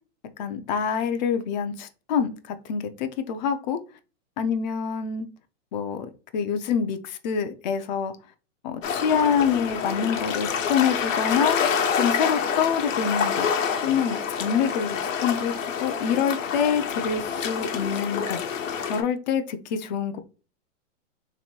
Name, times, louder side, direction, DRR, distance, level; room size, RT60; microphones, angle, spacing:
voice 1, 0.4-3.8 4.4-5.3 5.7-6.1 6.3-8.1 8.6-11.6 12.0-13.5 13.8-18.4 18.9-20.2, left 7 dB, 35° left, 9 dB, 0.5 m, -26 dB
sound 1, 8.8-19.0, left 7 dB, 85° left, 1.1 m, -27 dB
3.1 x 3.0 x 4.4 m, 0.35 s
supercardioid pair, 155°, 37 cm